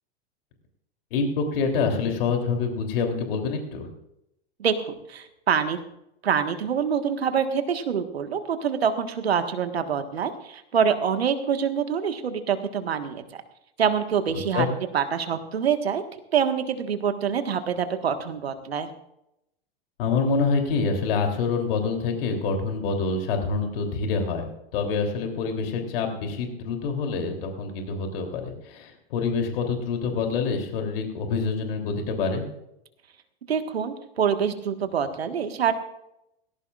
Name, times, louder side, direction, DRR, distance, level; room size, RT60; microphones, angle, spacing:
voice 1, 1.1-3.9 14.3-14.7 20.0-24.5 24.7-32.4, left 4 dB, 65° left, 3 dB, 3.3 m, -26 dB
voice 2, 4.6-5.8 6.2-13.4 13.8-14.7 14.9-16.0 16.3-18.9 33.5-35.7, right 7 dB, 80° right, 8 dB, 1.6 m, -25 dB
19.0 x 17.0 x 2.5 m, 0.81 s
hypercardioid pair, 95°, 31 cm